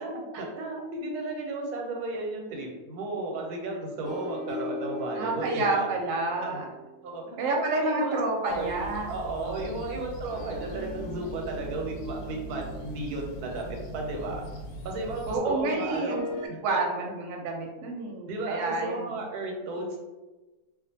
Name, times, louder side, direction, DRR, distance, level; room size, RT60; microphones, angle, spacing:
voice 1, 0.0-5.9 6.4-6.6 7.0-8.2 8.4-8.7 9.1-14.4 14.8-16.2 16.5-16.8 18.3-20.0, right 2 dB, 90° right, 1 dB, 1.1 m, -34 dB
sound 1, 4.0-8.6 10.3-14.4 15.8-16.5, left 1 dB, 55° left, 0.6 m, -41 dB
voice 2, 5.2-6.6 7.4-9.1 9.5-10.0 15.3-19.2, right 2 dB, 70° right, 0 dB, 0.8 m, -29 dB
sound 2, 8.5-15.4, equal, 80° left, 1.1 m, -41 dB
2.5 x 2.4 x 2.6 m, 1.2 s
omnidirectional pair, 1.6 m